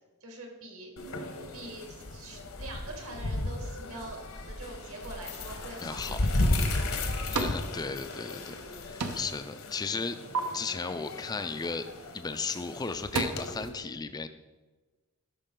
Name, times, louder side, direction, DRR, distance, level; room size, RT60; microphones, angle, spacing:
voice 1, 0.2-1.2 1.5-6.3, right 2 dB, 65° right, 2 dB, 1.7 m, -44 dB
sound 1, 1.0-13.7, left 2 dB, 65° left, 1.0 m, -34 dB
voice 2, 5.8-6.3 7.0-10.2 10.5-11.9 12.1-14.3, left 4 dB, 20° left, 11 dB, 0.3 m, -35 dB
sound 2, 7.3-7.7 8.0-8.7 9.0-9.4 9.8-10.4 12.2-12.4 12.8-13.2, right 4 dB, 85° right, 0.9 m, -34 dB
12.5 x 5.6 x 3.8 m, 1.2 s
head